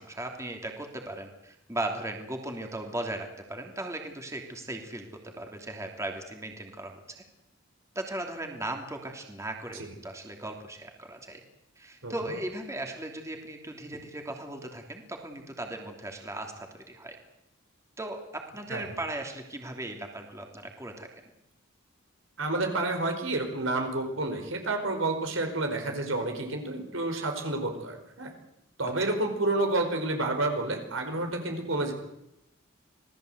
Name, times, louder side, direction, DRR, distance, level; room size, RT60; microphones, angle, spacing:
voice 1, 0.0-7.2 7.9-11.4 11.8-17.2 18.0-21.2 28.8-28.9, right 1 dB, 15° right, 3 dB, 2.9 m, -37 dB
voice 2, 22.4-28.3 28.8-31.9, right 2 dB, 80° right, 4 dB, 5.0 m, -29 dB
27.0 x 18.5 x 8.0 m, 0.84 s
head